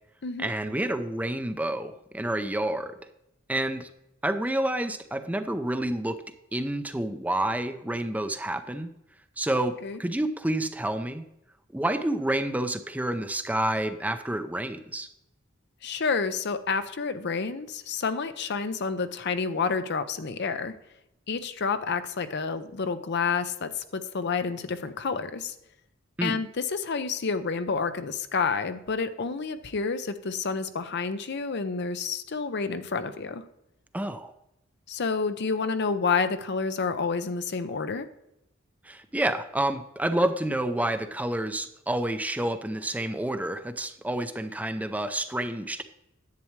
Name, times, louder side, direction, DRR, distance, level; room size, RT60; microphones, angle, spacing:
voice 1, 0.4-2.9 3.5-3.9 4.2-6.2 6.5-8.9 9.4-11.2 11.7-15.1 26.2-26.4 33.9-34.3 38.8-45.8, right 1 dB, 10° right, 9 dB, 0.5 m, -29 dB
voice 2, 9.5-10.0 15.8-20.7 21.3-25.5 26.2-33.4 34.9-38.1, left 5 dB, 55° left, 10 dB, 0.7 m, -29 dB
10.5 x 8.4 x 3.2 m, 0.84 s
head